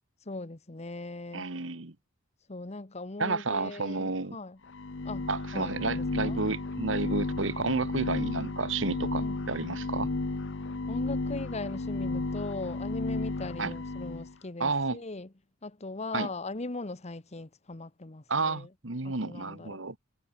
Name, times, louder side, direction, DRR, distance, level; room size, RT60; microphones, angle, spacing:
voice 1, 0.3-1.5 2.5-4.6 5.0-6.4 9.2-9.4 10.9-15.3 15.6-18.7 19.0-19.8, left 2 dB, 35° left, 1.1 m, -39 dB
voice 2, 1.3-1.9 3.2-4.4 5.3-10.1 13.6-13.7 14.6-15.0 16.1-16.3 18.3-19.9, right 3 dB, 65° right, 1.7 m, -31 dB
sound 1, 4.7-14.3, left 3 dB, 65° left, 0.9 m, -33 dB
head